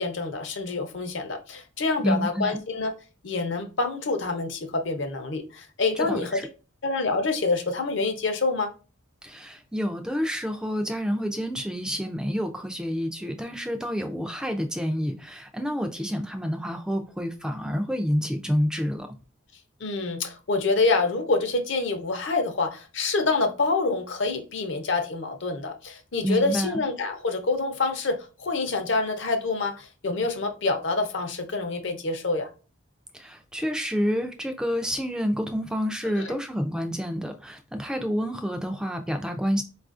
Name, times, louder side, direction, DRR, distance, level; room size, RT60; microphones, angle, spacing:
voice 1, 0.0-2.9 3.2-6.4 6.8-8.7 19.8-32.5 36.2-36.3, left 3 dB, 65° left, 0.6 m, -27 dB
voice 2, 2.0-2.6 6.0-6.5 9.2-19.1 26.2-26.8 33.1-39.6, equal, 5° right, 0.3 m, -28 dB
4.6 x 2.4 x 2.4 m
head